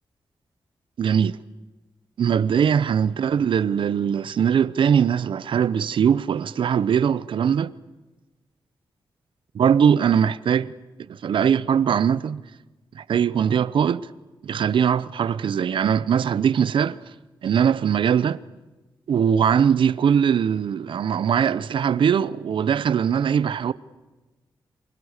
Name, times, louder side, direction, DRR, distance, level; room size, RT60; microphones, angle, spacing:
voice 1, 1.0-1.4 2.2-7.7 9.5-10.7 11.1-12.4 12.9-14.1 14.4-17.0 17.4-18.4 19.1-23.7, right 8 dB, 80° right, 0.9 m, -21 dB
29.0 x 28.0 x 6.7 m
wide cardioid pair, 150°, 8 cm